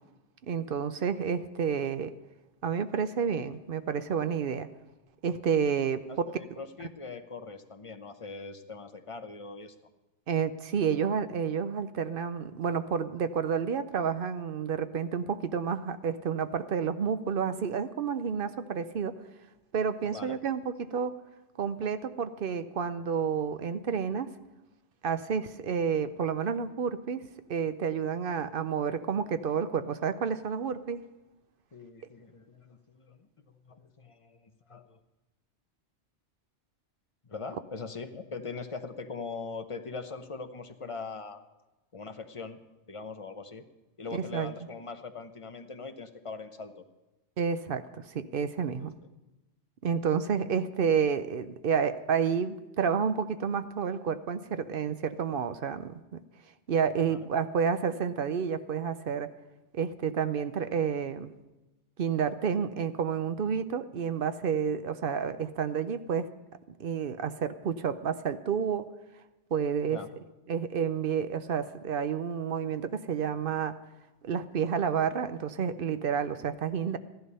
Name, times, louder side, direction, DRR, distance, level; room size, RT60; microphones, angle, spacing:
voice 1, 0.5-2.1 2.6-4.7 5.2-6.0 10.3-19.1 19.7-21.2 21.6-24.3 25.0-31.0 44.1-44.5 47.4-48.9 49.8-56.2 56.7-59.3 59.7-61.3 62.0-66.3 66.8-68.9 69.5-70.0 70.5-73.7 74.2-77.0, right 7 dB, 55° right, 11 dB, 0.8 m, -30 dB
voice 2, 6.1-9.8 20.0-20.4 25.2-25.3 31.7-35.0 37.2-41.4 41.9-42.6 42.9-43.6 44.0-46.8 48.8-48.9 57.1-57.3 69.8-70.1, left 4 dB, 30° left, 8 dB, 0.8 m, -41 dB
14.0 x 11.5 x 5.5 m, 1.0 s
omnidirectional pair, 1.2 m